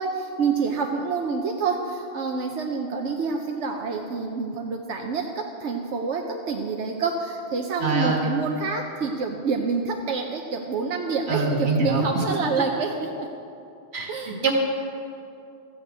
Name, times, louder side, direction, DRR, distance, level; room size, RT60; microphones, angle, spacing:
voice 1, 0.0-13.3 14.1-14.4, right 5 dB, 90° right, 2 dB, 1.1 m, -27 dB
voice 2, 7.8-8.2 11.3-12.0 13.9-14.1 14.4-14.5, right 3 dB, 65° right, 1 dB, 1.9 m, -23 dB
14.0 x 6.8 x 8.2 m, 2.7 s
omnidirectional pair, 1.2 m